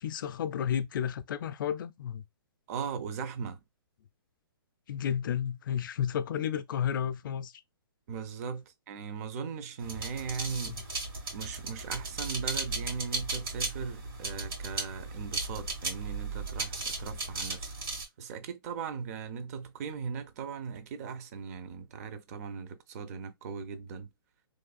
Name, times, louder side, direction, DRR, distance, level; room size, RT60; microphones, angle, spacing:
voice 1, 0.0-2.2 4.9-7.5 10.6-10.8, left 9 dB, 55° left, 0.4 m, -32 dB
voice 2, 2.7-3.6 8.1-10.8 11.3-17.7 18.2-24.1, right 6 dB, 40° right, 0.5 m, -38 dB
sound 1, 9.8-18.1, right 3 dB, 70° right, 1.9 m, -36 dB
3.1 x 2.3 x 2.3 m
hypercardioid pair, 140°, 13 cm